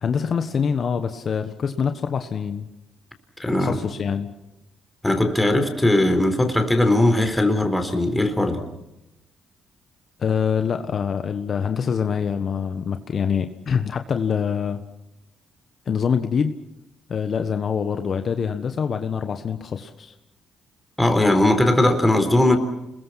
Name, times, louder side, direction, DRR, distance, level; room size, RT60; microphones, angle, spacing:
voice 1, 0.0-2.7 3.6-4.3 10.2-14.8 15.9-16.6 17.1-20.1, left 6 dB, 50° left, 7 dB, 1.4 m, -25 dB
voice 2, 3.4-3.8 5.0-8.6 21.0-22.6, left 1 dB, 10° left, 7 dB, 4.1 m, -19 dB
29.0 x 21.5 x 5.9 m, 0.92 s
cardioid pair, 90°, 0 cm